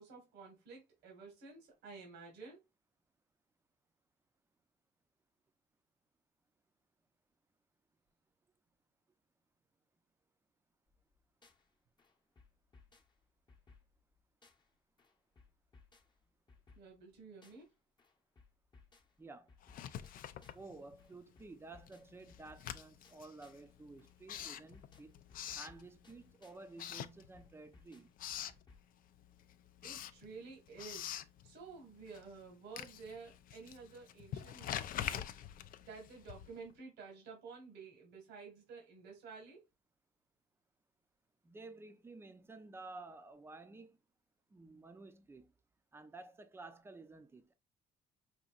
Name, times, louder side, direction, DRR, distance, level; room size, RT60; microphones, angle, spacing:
voice 1, 0.0-2.6 16.7-17.7 29.8-31.1 31.4-35.3 35.8-39.6, right 4 dB, 85° right, 1.6 m, -52 dB
sound 1, 10.9-11.7 12.0-14.7 15.0-17.7 18.0-20.7 21.0-23.7 24.0-26.7 27.0-28.9, left 4 dB, 25° left, 0.9 m, -65 dB
voice 2, 19.2-19.5 20.5-25.2 25.5-28.1 41.4-44.0 44.5-45.5 45.9-47.5, right 3 dB, 15° right, 0.5 m, -53 dB
Writing, 19.6-21.2 21.5-26.3 26.7-27.7 28.0-28.6 29.1-36.7, left 11 dB, 55° left, 0.4 m, -46 dB
5.1 x 2.8 x 2.4 m
cardioid pair, 110°, 17 cm